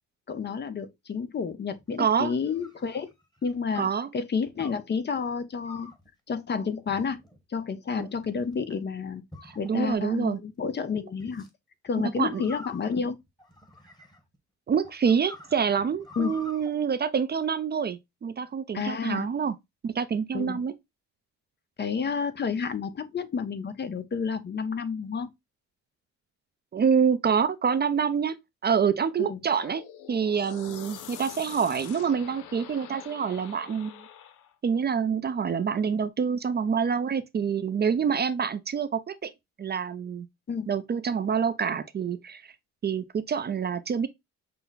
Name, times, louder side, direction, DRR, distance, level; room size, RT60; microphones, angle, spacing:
voice 1, 0.3-3.1 3.4-3.9 4.1-5.9 6.3-7.2 7.5-9.2 9.6-11.4 11.8-13.2 16.2-16.3 18.7-19.3 20.3-20.6 21.8-25.3 29.2-29.4 40.5-40.7, left 5 dB, 35° left, 0.7 m, -30 dB
sound 1, 1.8-3.6 4.6-4.9 5.6-6.1 6.9-7.4 8.0-8.6 9.3-10.1 11.2-11.5 12.3-14.4 14.8-16.7, left 2 dB, 15° left, 1.3 m, -48 dB
voice 2, 2.0-2.3 3.8-4.1 8.0-8.1 9.4-10.4 12.2-12.4 14.7-19.5 19.8-20.7 26.7-28.3 28.6-29.8 30.1-34.0 34.6-39.3 39.6-40.3 40.7-42.5 42.8-44.1, right 6 dB, 35° right, 0.5 m, -26 dB
sound 2, 29.5-34.5, left 9 dB, 85° left, 0.7 m, -45 dB
5.6 x 2.1 x 3.9 m
cardioid pair, 90°, 30 cm